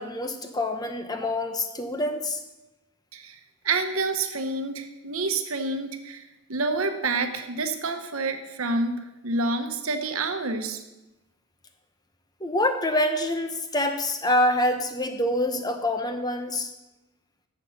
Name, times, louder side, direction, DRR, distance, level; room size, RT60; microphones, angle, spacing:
voice 1, 0.0-2.4 12.4-16.7, left 1 dB, 20° left, 6 dB, 0.8 m, -26 dB
voice 2, 3.6-10.8, right 3 dB, 75° right, 7 dB, 1.1 m, -28 dB
10.5 x 7.2 x 5.8 m, 0.99 s
head